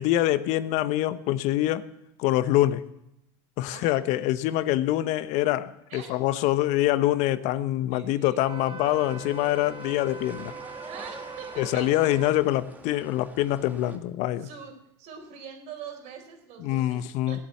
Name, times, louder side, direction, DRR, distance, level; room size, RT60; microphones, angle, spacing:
voice 1, 0.0-1.8 2.2-2.8 3.6-10.5 11.6-14.5 16.6-17.4, left 14 dB, 55° left, 14 dB, 0.9 m, -25 dB
voice 2, 7.9-8.5 10.9-11.9 14.4-17.4, right 7 dB, 55° right, 5 dB, 4.1 m, -43 dB
Wind instrument woodwind instrument, 8.4-12.4, right 4 dB, 35° right, 1.6 m, -41 dB
sound 1, 8.8-14.0, right 1 dB, 10° right, 2.3 m, -46 dB
18.0 x 8.4 x 8.4 m, 0.85 s
hypercardioid pair, 100°, 14 cm